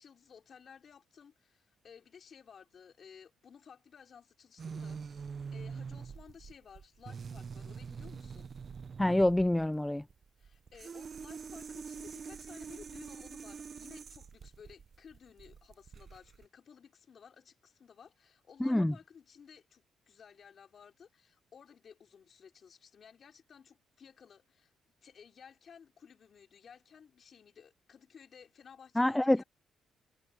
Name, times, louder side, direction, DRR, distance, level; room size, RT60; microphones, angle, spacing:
voice 1, 0.0-5.3 5.5-8.5 10.4-24.7 25.0-29.4, left 7 dB, 50° left, 3.9 m, -56 dB
sound 1, 4.6-16.4, right 6 dB, 45° right, 0.8 m, -45 dB
voice 2, 9.0-10.0 18.6-18.9 29.0-29.4, left 1 dB, 10° left, 0.6 m, -26 dB
cardioid pair, 90°, 0 cm